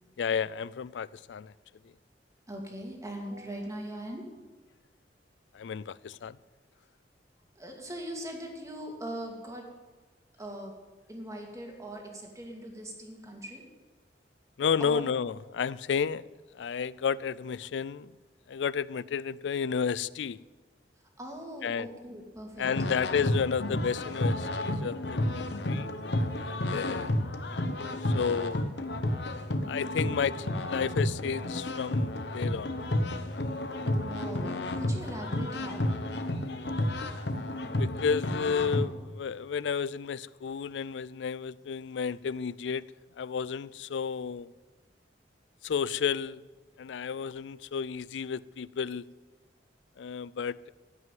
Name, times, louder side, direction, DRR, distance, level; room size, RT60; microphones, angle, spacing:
voice 1, 0.2-1.5 5.5-6.4 14.6-16.2 16.6-18.1 18.5-20.4 21.6-21.9 22.6-25.9 26.3-27.1 28.0-28.9 29.6-32.8 37.8-42.8 43.2-44.5 45.6-46.4 46.8-49.0 50.0-50.7, left 6 dB, 85° left, 0.4 m, -32 dB
voice 2, 2.5-4.3 7.6-9.7 10.4-10.7 11.1-13.7 14.8-15.1 21.2-22.7 34.0-36.0, right 1 dB, 20° right, 2.4 m, -40 dB
sound 1, 22.6-38.8, left 1 dB, 70° left, 1.0 m, -31 dB
15.0 x 6.1 x 9.2 m
head